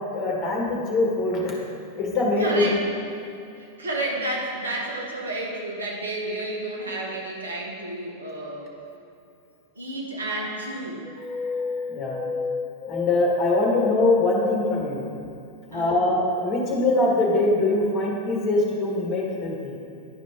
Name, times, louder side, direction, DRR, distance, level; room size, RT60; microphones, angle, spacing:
voice 1, 0.1-1.6 2.0-2.8 11.9-12.2 12.9-15.0 15.7-19.7, left 2 dB, 25° left, -2 dB, 1.6 m, -23 dB
voice 2, 2.4-2.8 3.6-8.7 9.7-11.0 15.7-16.1, right 2 dB, 75° right, -2 dB, 1.3 m, -31 dB
sound 1, 11.0-14.8, left 6 dB, 5° left, 0.4 m, -30 dB
10.5 x 5.0 x 3.5 m, 2.6 s
figure-of-eight pair, 90°, 0 cm